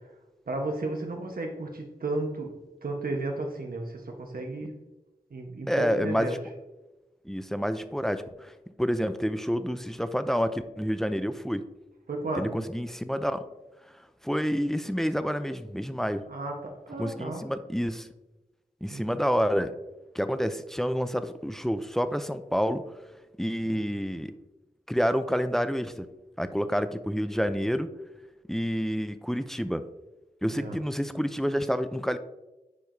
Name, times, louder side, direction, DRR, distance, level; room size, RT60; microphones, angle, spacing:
voice 1, 0.5-2.5 2.8-4.7 5.3-6.3 12.1-12.6 16.3-17.4 18.9-19.1 23.6-23.8 30.5-30.8, right 2 dB, 75° right, 2 dB, 1.2 m, -33 dB
voice 2, 5.7-6.4 7.3-8.5 8.8-11.6 12.4-13.4 14.2-16.2 17.0-18.1 18.8-19.7 20.1-22.8 23.4-24.3 24.9-26.1 26.4-27.9 28.5-29.8 30.4-32.2, equal, 5° left, 11 dB, 0.4 m, -28 dB
9.8 x 4.7 x 2.7 m, 1.0 s
wide cardioid pair, 70°, 15 cm